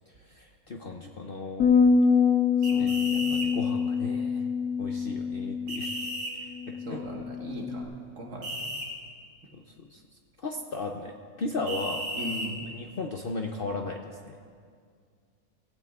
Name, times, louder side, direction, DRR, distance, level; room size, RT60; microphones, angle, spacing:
voice 1, 0.1-1.7 2.7-4.4 4.8-6.1 6.4-7.0 9.5-10.0 10.4-12.1 12.7-14.4, left 3 dB, 55° left, 3 dB, 0.7 m, -36 dB
sound 1, 1.6-7.8, left 5 dB, 85° left, 1.4 m, -25 dB
voice 2, 2.6-3.3 6.9-8.7 12.1-12.7, right 1 dB, 55° right, 0 dB, 1.8 m, -39 dB
sound 2, 2.6-3.5 5.7-6.3 8.4-8.9 11.7-12.5, right 1 dB, 75° right, 2.5 m, -34 dB
17.5 x 16.0 x 2.4 m, 2.1 s
omnidirectional pair, 1.5 m